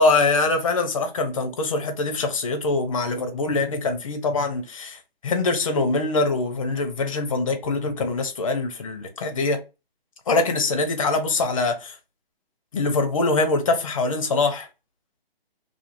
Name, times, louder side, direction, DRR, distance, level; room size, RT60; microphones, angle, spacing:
voice 1, 0.0-9.6 10.3-12.0 12.7-14.7, left 3 dB, 35° left, 0.5 m, -23 dB
2.3 x 2.3 x 2.9 m
figure-of-eight pair, 150°, 30 cm